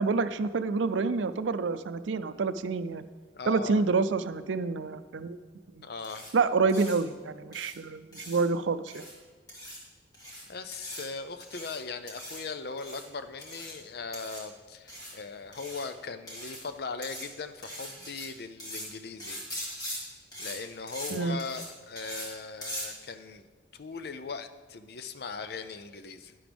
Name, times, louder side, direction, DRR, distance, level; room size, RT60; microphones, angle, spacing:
voice 1, 0.0-3.0 3.5-5.4 5.8-5.9 6.3-9.0 21.1-21.4, right 4 dB, 85° right, 13 dB, 0.5 m, -28 dB
voice 2, 3.3-3.8 5.8-6.3 10.5-19.4 20.0-20.1 20.4-23.5 23.7-26.4, left 4 dB, 55° left, 10 dB, 0.6 m, -39 dB
sound 1, 6.0-6.3 6.7-7.0 7.5-7.7 8.1-8.4 8.9-9.1 9.5-9.8 10.1-10.4 10.7-11.0 11.4-11.8 12.1-12.4 12.8-13.0 13.4-13.7 14.1-14.4 14.9-15.1 15.5-15.8 16.3-16.6 17.0-17.2 17.6-18.3 18.6-18.9 19.2-20.0 20.3-20.6 20.9-21.1 21.4-21.7 22.0-22.3 22.6-22.9, equal, 20° left, 2.2 m, -40 dB
11.0 x 10.0 x 3.5 m, 1.4 s
head